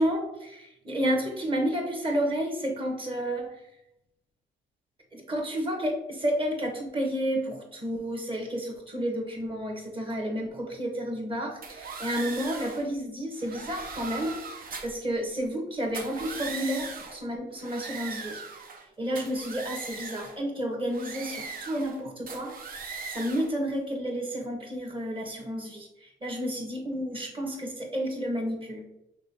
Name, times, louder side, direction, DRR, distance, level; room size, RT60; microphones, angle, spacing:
voice 1, 0.0-3.6 5.1-18.4 19.0-22.5 23.1-28.8, equal, 25° right, 2 dB, 1.3 m, -31 dB
sound 1, 11.6-12.8 13.4-15.0 15.8-17.2 17.6-18.8 19.1-20.4 20.9-22.0 22.3-23.5, right 4 dB, 45° right, 0.7 m, -39 dB
5.3 x 3.4 x 2.8 m, 0.83 s
cardioid pair, 90°, 20 cm